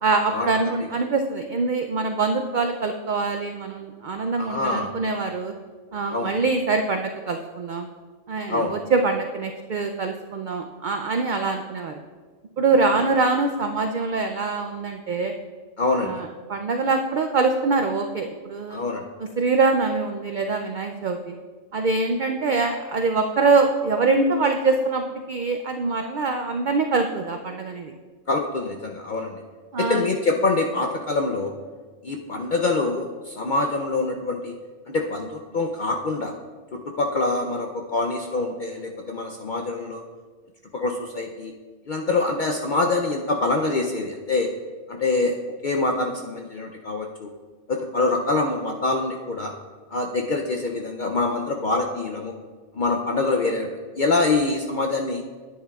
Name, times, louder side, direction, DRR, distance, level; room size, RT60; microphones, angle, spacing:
voice 1, 0.0-5.5 5.9-7.9 8.3-12.0 12.6-15.3 15.9-18.8 19.2-21.3 21.7-27.9 29.7-30.0, right 3 dB, 80° right, 4 dB, 0.4 m, -24 dB
voice 2, 4.4-4.9 6.1-6.3 8.5-8.7 15.8-16.1 18.7-19.0 28.3-29.4 29.8-31.5 32.0-34.5 34.9-36.3 36.7-40.0 40.7-41.5 41.9-44.5 44.9-45.4 45.6-47.3 47.7-49.5 49.9-52.3 52.7-53.7 54.0-55.2, left 3 dB, 60° left, 2 dB, 0.5 m, -25 dB
10.0 x 9.4 x 2.3 m, 1.5 s
omnidirectional pair, 1.4 m